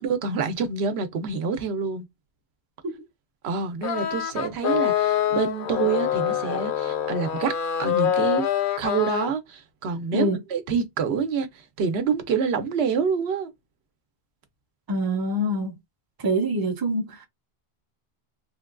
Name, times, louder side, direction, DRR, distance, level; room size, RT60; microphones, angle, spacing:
voice 1, 0.0-2.1 3.4-7.5 7.8-8.5 8.8-13.5, right 6 dB, 80° right, 0.9 m, -27 dB
sound 1, 3.8-9.3, left 10 dB, 65° left, 0.7 m, -25 dB
voice 2, 14.9-15.8 16.2-17.3, right 1 dB, 30° right, 0.5 m, -25 dB
3.1 x 2.2 x 2.3 m
omnidirectional pair, 1.1 m